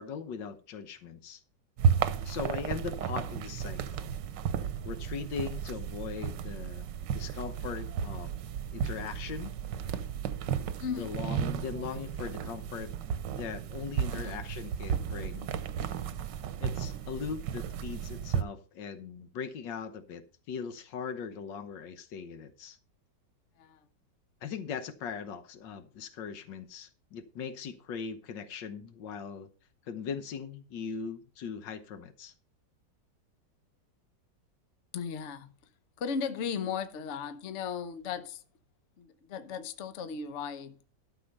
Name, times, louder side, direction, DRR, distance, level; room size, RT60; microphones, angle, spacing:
voice 1, 0.0-1.4 2.2-4.1 4.8-6.9 7.1-8.3 8.7-9.5 10.9-12.9 13.3-15.6 16.6-22.8 24.4-29.5 29.9-32.3, left 6 dB, 85° left, 1.7 m, -40 dB
sound 1, 1.8-18.4, right 8 dB, 90° right, 1.4 m, -33 dB
voice 2, 2.2-2.5 10.8-11.1 14.1-14.4 23.6-23.8 34.9-35.5 36.0-38.4 39.0-40.9, left 6 dB, 50° left, 1.1 m, -36 dB
12.0 x 6.3 x 5.3 m
omnidirectional pair, 1.9 m